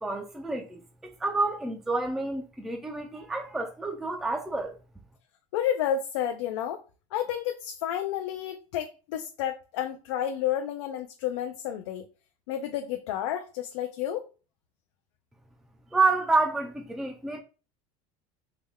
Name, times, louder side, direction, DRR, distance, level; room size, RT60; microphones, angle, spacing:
voice 1, 0.0-4.8 15.9-17.4, right 3 dB, ahead, 0.3 m, -29 dB
voice 2, 5.5-6.8 7.1-12.1 12.5-14.3, left 10 dB, 90° left, 0.4 m, -31 dB
3.3 x 2.1 x 3.4 m
supercardioid pair, 140°, 14 cm